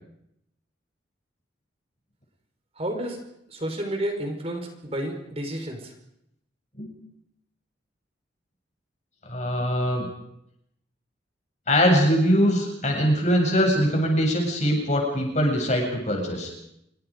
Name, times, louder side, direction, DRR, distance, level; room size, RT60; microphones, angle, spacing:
voice 1, 2.8-3.2 3.5-5.9, right 1 dB, 30° right, 4 dB, 4.8 m, -31 dB
voice 2, 9.3-10.0 11.7-16.5, equal, 40° left, 2 dB, 7.7 m, -22 dB
27.5 x 24.5 x 5.3 m, 0.78 s
head